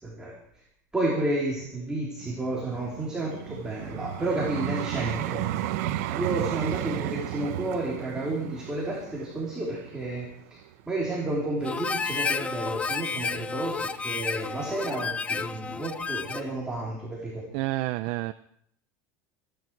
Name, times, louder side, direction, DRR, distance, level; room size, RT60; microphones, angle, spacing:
voice 1, 0.0-0.3 0.9-5.5 6.1-10.6 10.9-17.4, right 2 dB, 10° right, -4 dB, 3.2 m, -31 dB
Vehicle, 2.2-11.3 11.9-12.1, right 13 dB, 75° right, 1.1 m, -34 dB
Harmonica, 11.6-16.6, left 4 dB, 15° left, 0.5 m, -31 dB
voice 2, 17.5-18.3, right 18 dB, 60° right, 12 dB, 0.5 m, -29 dB
25.5 x 10.5 x 4.6 m, 0.68 s
supercardioid pair, 155°, 9 cm